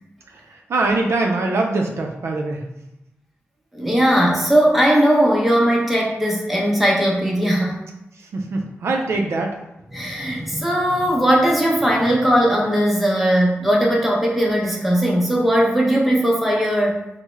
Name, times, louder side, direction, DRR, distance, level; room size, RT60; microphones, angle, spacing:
voice 1, 0.7-2.6 8.3-9.5, right 2 dB, 70° right, 1 dB, 0.4 m, -22 dB
voice 2, 3.7-7.8 9.9-17.0, equal, 5° right, -3 dB, 0.6 m, -18 dB
3.4 x 2.0 x 3.1 m, 0.89 s
wide cardioid pair, 150°, 5 cm